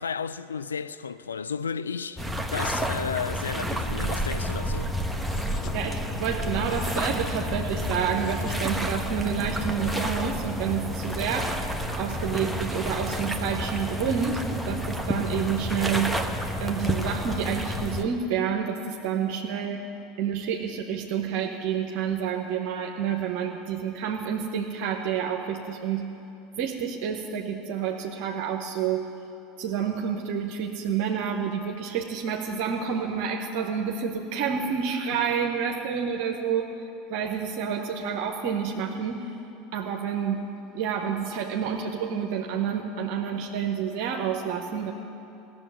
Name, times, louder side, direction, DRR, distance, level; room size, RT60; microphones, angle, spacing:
voice 1, 0.0-2.2 2.5-4.9, left 6 dB, 85° left, 0.4 m, -33 dB
sound 1, 2.2-18.0, equal, 5° left, 1.2 m, -30 dB
sound 2, 5.2-5.8 6.6-7.2 8.0-8.6, left 10 dB, 50° left, 0.8 m, -44 dB
voice 2, 5.7-11.5 12.0-16.2 16.6-19.8 20.2-26.1 26.6-29.0 29.6-36.6 37.1-39.2 39.7-40.4 40.7-44.9, right 7 dB, 60° right, 0.9 m, -29 dB
16.0 x 7.4 x 10.0 m
figure-of-eight pair, 75°, 0 cm